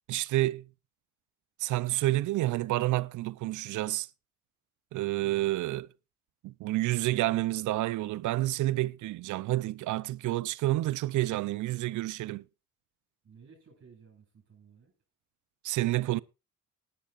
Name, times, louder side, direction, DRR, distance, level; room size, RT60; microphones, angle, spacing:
voice 1, 0.1-0.7 1.6-4.1 4.9-5.9 6.4-12.4 15.6-16.2, right 17 dB, 75° right, 0.6 m, -29 dB
voice 2, 13.2-14.9, right 6 dB, 50° right, 7.2 m, -56 dB
19.0 x 11.0 x 2.5 m
cardioid pair, 90°, 30 cm